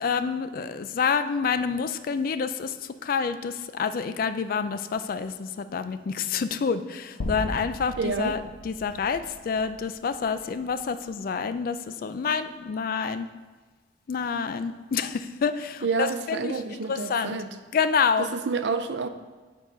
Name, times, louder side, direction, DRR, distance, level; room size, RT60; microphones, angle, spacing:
voice 1, 0.0-2.7 3.0-13.3 14.1-17.4 17.7-18.3, left 5 dB, 50° left, 11 dB, 0.3 m, -28 dB
sound 1, 7.2-11.4, left 1 dB, 90° left, 0.7 m, -38 dB
voice 2, 8.0-8.4 15.8-17.5 18.2-19.1, right 4 dB, 65° right, 9 dB, 0.4 m, -28 dB
7.7 x 4.7 x 3.8 m, 1.3 s
head